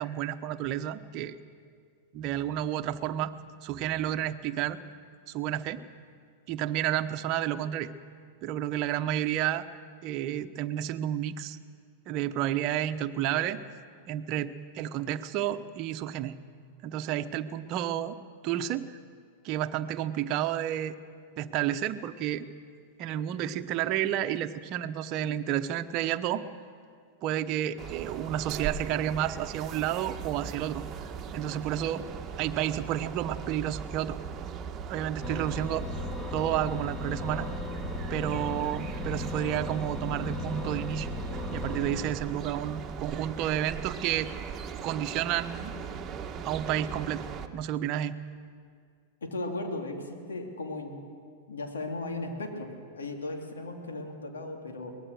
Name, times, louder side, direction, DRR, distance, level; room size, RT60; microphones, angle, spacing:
voice 1, 0.0-1.4 2.1-3.3 3.6-4.8 5.3-5.8 6.5-7.9 8.4-9.7 10.0-11.6 12.1-13.6 14.1-16.3 16.8-18.1 18.4-19.0 19.4-20.9 21.4-22.4 23.0-26.4 27.2-30.8 31.3-32.0 32.4-34.2 34.9-35.9 36.3-37.5 38.1-41.1 41.5-44.3 44.8-45.7 46.4-47.3 47.5-48.2, right 11 dB, 45° right, 8 dB, 1.0 m, -31 dB
sound 1, 27.8-47.5, right 6 dB, 30° right, 1.4 m, -39 dB
sound 2, 35.2-42.0, left 2 dB, 20° left, 2.8 m, -37 dB
voice 2, 49.2-51.0 51.5-54.9, left 2 dB, 80° left, 3 dB, 3.0 m, -36 dB
23.0 x 19.5 x 6.5 m, 2.1 s
hypercardioid pair, 100°, 0 cm